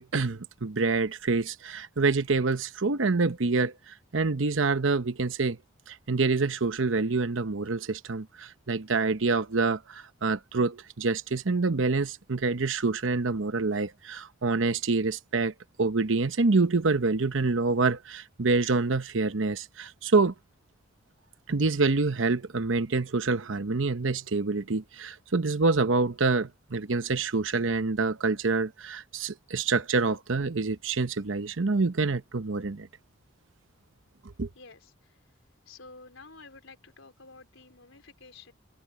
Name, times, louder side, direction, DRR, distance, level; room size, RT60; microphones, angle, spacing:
voice 1, 0.0-5.6 5.9-15.5 15.8-20.3 21.5-32.9 34.4-34.5, right 3 dB, 70° right, 0.9 m, -26 dB
voice 2, 35.7-38.5, left 3 dB, 80° left, 4.0 m, -50 dB
head